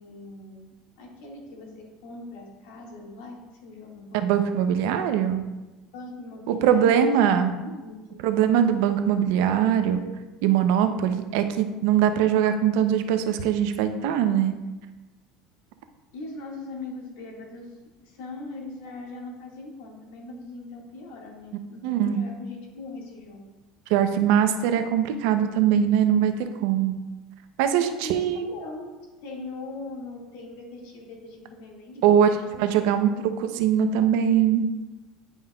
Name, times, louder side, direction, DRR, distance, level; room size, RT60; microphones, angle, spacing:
voice 1, 0.0-4.4 5.9-7.9 16.1-17.7 18.0-23.4 27.8-28.9 29.2-33.2, left 2 dB, 85° left, -1 dB, 1.8 m, -41 dB
voice 2, 4.1-5.4 6.5-7.5 8.2-10.0 10.4-14.5 21.8-22.2 23.9-27.0 27.6-28.4 32.0-32.3 32.6-33.1 33.4-34.7, right 9 dB, 75° right, 8 dB, 0.6 m, -22 dB
10.0 x 5.4 x 2.3 m, 1.1 s
supercardioid pair, 125°, 0 cm